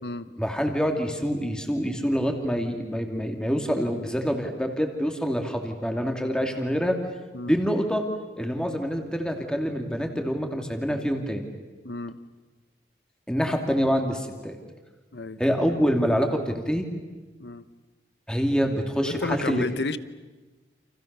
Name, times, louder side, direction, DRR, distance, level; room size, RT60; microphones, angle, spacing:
voice 1, 0.4-7.0 7.5-8.1 8.4-11.5 13.3-14.6 15.4-16.9 18.3-19.6, equal, 5° left, 4 dB, 2.7 m, -26 dB
voice 2, 11.8-12.2 15.1-15.4 17.4-17.6 19.0-20.0, left 2 dB, 70° left, 14 dB, 1.1 m, -31 dB
30.0 x 29.0 x 6.9 m, 1.3 s
head